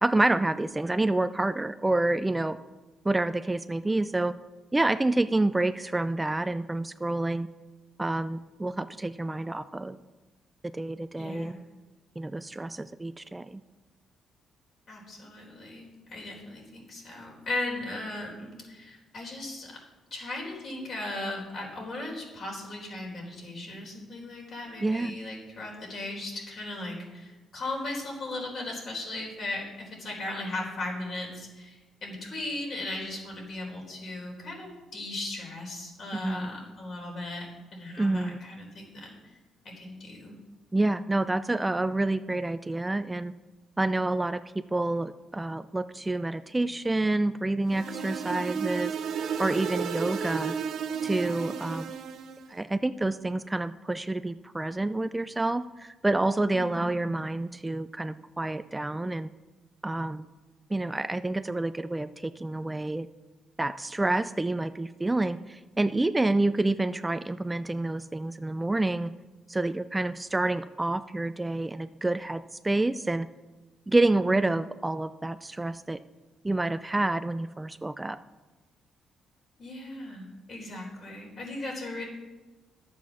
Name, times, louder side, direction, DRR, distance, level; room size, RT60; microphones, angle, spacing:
voice 1, 0.0-2.6 3.0-4.3 4.7-7.5 8.0-10.0 10.7-11.5 12.2-13.6 24.8-25.2 36.1-36.5 38.0-38.4 40.7-43.3 43.8-44.4 44.7-48.9 49.4-50.5 51.0-51.9 52.5-59.3 59.8-60.2 60.7-63.1 63.6-69.1 69.5-73.3 73.9-76.0 76.4-78.2, right 2 dB, 15° right, 12 dB, 0.4 m, -28 dB
voice 2, 11.1-11.6 14.9-19.7 20.1-37.5 37.7-39.1 39.8-40.4 56.5-57.1 79.6-82.0, left 2 dB, 55° left, -1 dB, 3.8 m, -37 dB
sound 1, 47.7-52.5, right 7 dB, 70° right, 0.8 m, -33 dB
11.5 x 7.4 x 6.2 m, 1.2 s
cardioid pair, 90°, 0 cm